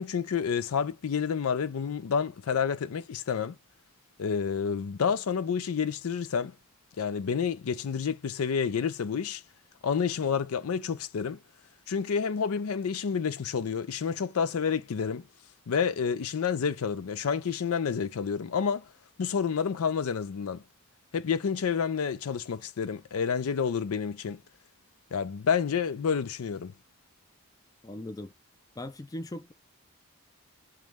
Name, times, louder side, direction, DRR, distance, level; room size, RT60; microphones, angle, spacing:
voice 1, 0.0-3.6 4.2-6.5 7.0-9.4 9.8-11.4 11.9-15.2 15.7-18.9 19.2-20.6 21.1-24.4 25.1-26.7, left 6 dB, 85° left, 0.5 m, -29 dB
voice 2, 27.8-28.3 28.8-29.5, left 1 dB, 15° left, 0.3 m, -39 dB
3.2 x 3.0 x 3.5 m
head